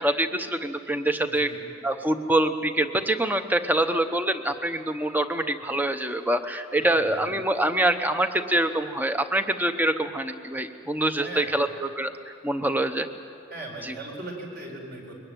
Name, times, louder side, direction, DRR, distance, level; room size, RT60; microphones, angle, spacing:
voice 1, 0.0-1.5 1.8-13.1 13.8-13.9, right 1 dB, 10° right, 9 dB, 0.9 m, -25 dB
voice 2, 1.2-1.6 6.8-7.3 11.2-11.5 13.5-15.1, right 2 dB, 50° right, 0 dB, 4.8 m, -39 dB
22.5 x 20.0 x 9.2 m, 2.6 s
head